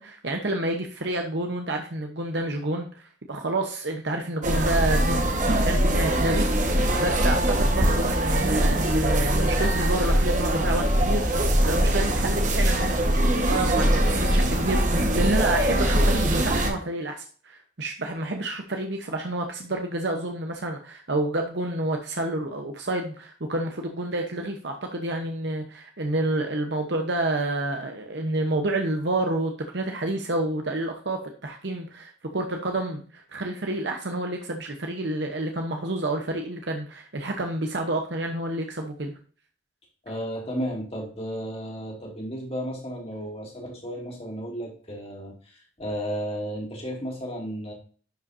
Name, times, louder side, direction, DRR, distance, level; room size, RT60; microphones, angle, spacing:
voice 1, 0.0-11.3 11.6-39.1, right 2 dB, 65° right, 3 dB, 1.0 m, -29 dB
sound 1, 4.4-16.7, right 1 dB, 40° right, 1.4 m, -22 dB
voice 2, 40.0-47.7, equal, 30° left, -1 dB, 2.7 m, -33 dB
11.5 x 5.4 x 2.7 m, 0.41 s
head